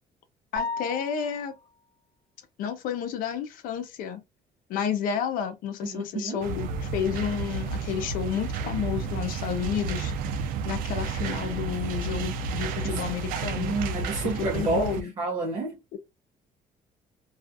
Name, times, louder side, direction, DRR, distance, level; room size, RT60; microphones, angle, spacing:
voice 1, 0.5-1.5 2.6-4.2 4.7-10.1 10.6-13.8 14.2-15.1 15.9-16.0, left 8 dB, 75° left, 0.5 m, -31 dB
sound 1, 0.6-1.6, left 4 dB, ahead, 1.0 m, -34 dB
voice 2, 5.8-6.4 12.8-13.0 13.5-15.8, right 2 dB, 30° right, 0.6 m, -30 dB
sound 2, 6.4-15.0, right 5 dB, 80° right, 0.4 m, -31 dB
2.4 x 2.3 x 2.5 m
cardioid pair, 175°, 15 cm